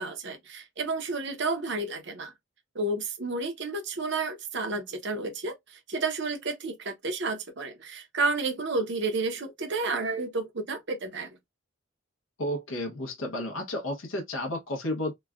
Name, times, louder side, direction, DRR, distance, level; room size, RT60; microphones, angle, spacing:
voice 1, 0.0-2.3 2.7-11.4, right 3 dB, 60° right, 0.8 m, -31 dB
voice 2, 12.4-15.1, left 1 dB, 80° left, 0.8 m, -32 dB
3.1 x 2.2 x 2.3 m
head